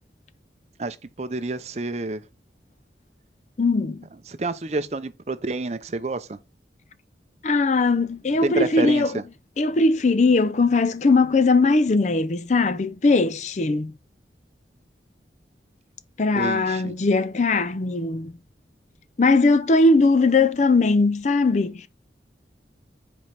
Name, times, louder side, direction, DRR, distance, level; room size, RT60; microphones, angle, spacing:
voice 1, 0.8-2.2 4.3-6.4 8.4-9.2 16.3-16.9, right 2 dB, 40° right, 0.6 m, -28 dB
voice 2, 3.6-4.1 7.4-9.1 9.6-13.9 16.2-18.3 19.2-21.9, left 3 dB, 40° left, 0.5 m, -20 dB
5.0 x 4.3 x 5.8 m
head